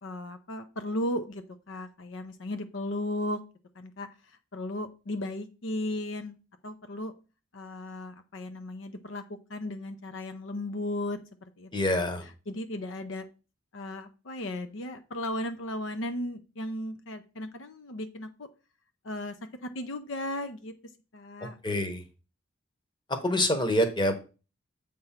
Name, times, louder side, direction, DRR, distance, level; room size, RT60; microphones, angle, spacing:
voice 1, 0.0-3.4 3.8-4.1 4.5-6.3 6.6-7.1 7.5-11.2 11.6-11.7 12.2-13.2 13.7-18.5 19.0-19.3 19.6-20.7 21.1-21.6, left 1 dB, 70° left, 8 dB, 0.6 m, -35 dB
voice 2, 11.7-12.2 21.6-22.0 23.2-24.1, left 1 dB, 20° left, 7 dB, 1.0 m, -26 dB
7.8 x 3.5 x 5.7 m, 0.33 s
head